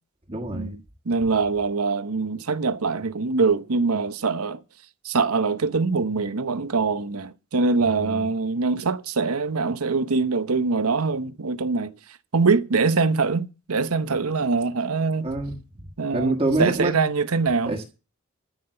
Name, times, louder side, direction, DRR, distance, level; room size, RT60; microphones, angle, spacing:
voice 1, 0.3-0.7 1.2-1.3 7.9-8.3 15.2-15.8 16.1-17.0 17.6-17.8, right 2 dB, 25° right, 1.5 m, -26 dB
voice 2, 1.1-4.6 5.0-11.9 12.3-15.3 16.0-17.7, right 4 dB, 90° right, 0.9 m, -23 dB
13.5 x 5.8 x 7.8 m
head